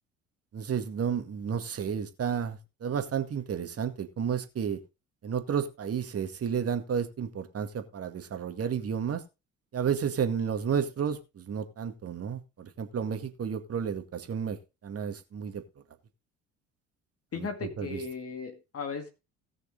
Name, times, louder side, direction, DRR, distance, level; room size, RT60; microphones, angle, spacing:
voice 1, 0.5-4.8 5.2-9.2 9.7-14.6 14.8-15.6 17.4-17.5 17.8-18.0, right 7 dB, 40° right, 8 dB, 2.1 m, -31 dB
voice 2, 17.3-19.1, left 5 dB, 40° left, 6 dB, 2.2 m, -36 dB
18.0 x 6.5 x 3.8 m, 0.28 s
figure-of-eight pair, 55°, 37 cm